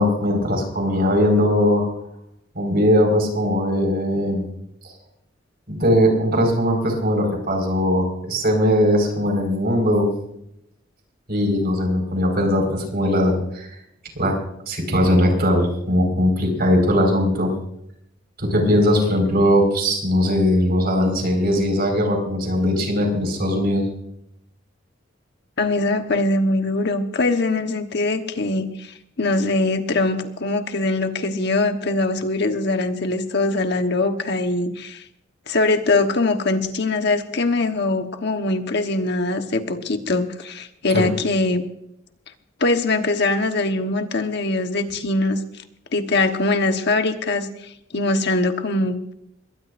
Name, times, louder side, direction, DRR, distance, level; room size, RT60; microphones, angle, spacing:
voice 1, 0.0-1.9 2.5-4.4 5.7-10.1 11.3-13.8 14.1-14.3 14.7-17.5 18.4-23.9 40.9-41.1, left 1 dB, 55° right, 3 dB, 5.1 m, -19 dB
voice 2, 25.6-35.0 35.5-41.6 42.6-45.4 45.9-49.1, left 2 dB, 60° left, 6 dB, 1.3 m, -22 dB
22.0 x 18.5 x 2.6 m, 0.78 s
head